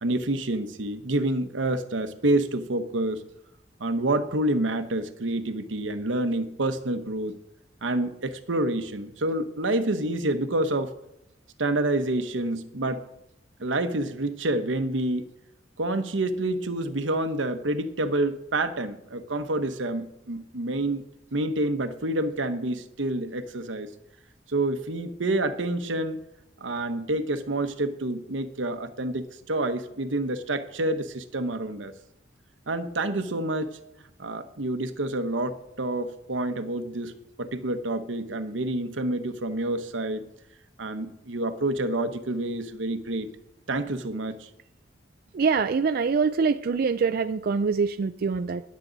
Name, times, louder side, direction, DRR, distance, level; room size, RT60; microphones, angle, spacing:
voice 1, 0.0-3.2 3.8-7.4 7.8-10.9 11.6-13.0 13.6-15.3 15.8-21.0 21.3-23.9 24.5-26.2 26.6-31.9 32.7-33.8 34.2-40.2 40.8-43.3 43.7-44.5, right 2 dB, 85° right, 9 dB, 1.0 m, -28 dB
voice 2, 45.3-48.6, right 5 dB, 55° right, 10 dB, 0.4 m, -24 dB
20.0 x 7.6 x 4.0 m, 0.81 s
head